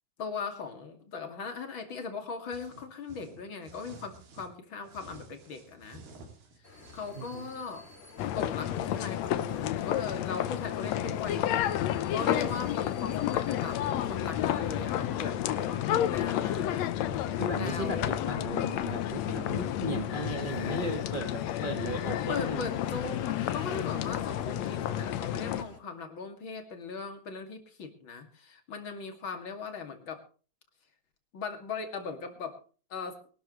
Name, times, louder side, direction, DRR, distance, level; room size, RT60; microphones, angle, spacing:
voice 1, 0.2-6.0 6.9-7.9 8.3-11.8 12.1-16.9 17.2-18.2 22.3-30.2 31.3-32.6 32.9-33.2, left 5 dB, 40° left, 6 dB, 2.8 m, -39 dB
sound 1, 2.5-4.5 4.8-7.5, right 2 dB, 80° right, 4.5 m, -52 dB
sound 2, 6.6-25.8, left 3 dB, 20° left, 2.4 m, -52 dB
voice 2, 7.1-7.5 17.1-22.7, right 1 dB, 45° right, 4 dB, 0.6 m, -36 dB
sound 3, 8.2-25.6, left 11 dB, 70° left, 1.7 m, -31 dB
23.0 x 12.5 x 3.2 m, 0.38 s
omnidirectional pair, 4.0 m